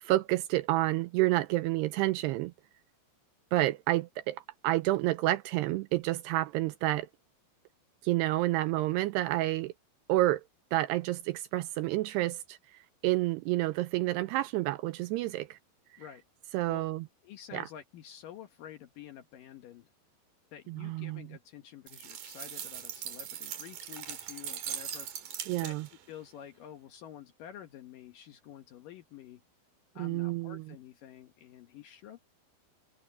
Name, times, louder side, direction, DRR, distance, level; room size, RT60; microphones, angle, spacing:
voice 1, 0.0-2.5 3.5-7.1 8.0-9.7 10.1-10.4 10.7-12.6 13.0-15.6 16.5-17.0 17.5-17.7 20.7-21.2 25.5-25.9 30.0-30.6, right 17 dB, 85° right, 2.4 m, -29 dB
voice 2, 17.2-19.9 20.5-25.1 25.6-25.8 26.1-29.4 30.0-32.2, left 10 dB, 70° left, 2.1 m, -49 dB
sound 1, 21.9-26.0, right 9 dB, 55° right, 2.8 m, -40 dB
omnidirectional pair, 5.3 m